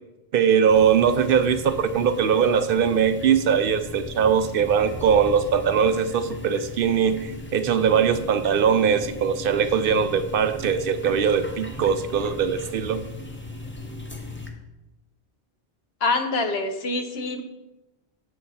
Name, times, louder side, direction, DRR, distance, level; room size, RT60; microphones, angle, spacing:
voice 1, 0.3-13.0, right 7 dB, 65° right, 11 dB, 0.7 m, -21 dB
sound 1, 0.7-14.5, left 2 dB, 15° left, 0.8 m, -38 dB
voice 2, 16.0-17.4, left 3 dB, 80° left, 7 dB, 1.1 m, -25 dB
6.6 x 6.3 x 5.5 m, 0.99 s
omnidirectional pair, 1.0 m